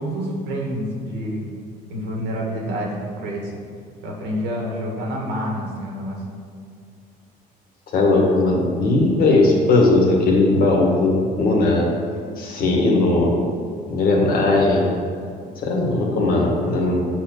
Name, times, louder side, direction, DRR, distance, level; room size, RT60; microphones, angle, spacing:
voice 1, 0.0-1.4 1.9-3.5 4.0-6.2, equal, 85° right, -2 dB, 2.0 m, -28 dB
voice 2, 7.9-11.9 12.4-13.3 13.9-14.9 15.6-17.0, left 2 dB, 60° left, -2 dB, 2.1 m, -18 dB
8.1 x 4.3 x 6.7 m, 2.2 s
cardioid pair, 110°, 17 cm